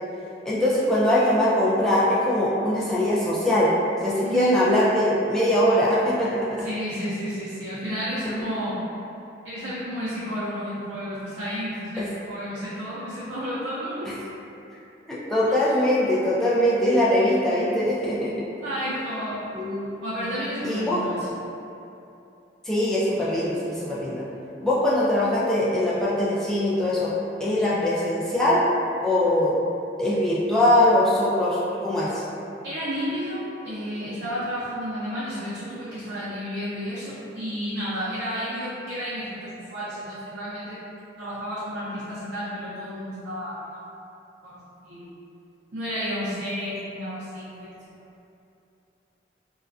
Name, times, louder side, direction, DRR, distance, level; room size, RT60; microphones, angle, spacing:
voice 1, 0.4-3.7 4.0-6.4 8.2-8.3 12.0-12.1 15.1-18.3 19.5-19.9 20.6-21.0 22.6-24.2 24.6-27.1 27.4-28.7 29.0-29.5 30.0-32.2, left 1 dB, 5° left, -9 dB, 0.3 m, -22 dB
voice 2, 4.2-4.6 6.6-8.8 9.4-14.2 18.6-19.5 20.0-21.4 27.6-27.7 32.6-40.8 41.2-43.8 44.4-45.1 45.7-47.9, equal, 65° right, -12 dB, 0.5 m, -31 dB
2.3 x 2.1 x 2.4 m, 2.8 s
head